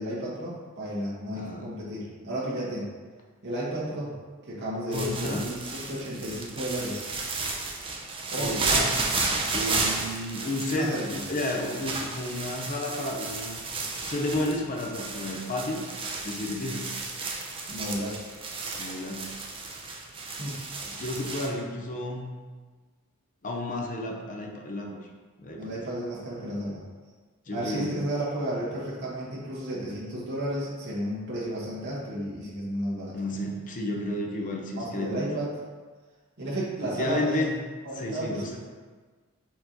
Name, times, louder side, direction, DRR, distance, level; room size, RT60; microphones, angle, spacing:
voice 1, 0.0-2.9 3.4-4.1 4.5-7.1 8.3-8.6 10.7-11.2 17.7-18.2 18.5-18.9 20.4-20.6 25.5-26.8 27.5-33.5 34.7-35.5 36.4-37.4 37.8-38.6, right 1 dB, 55° right, -7 dB, 1.3 m, -32 dB
voice 2, 1.3-1.7 4.9-5.4 8.3-8.9 9.5-13.6 14.1-15.8 16.2-17.0 18.7-19.4 20.9-22.3 23.4-25.0 25.4-25.8 27.5-27.9 33.1-35.2 36.8-37.5 38.0-38.6, left 1 dB, 40° left, 1 dB, 0.6 m, -32 dB
sound 1, 4.9-21.5, right 3 dB, 25° right, 0.5 m, -33 dB
4.4 x 3.0 x 3.8 m, 1.4 s
head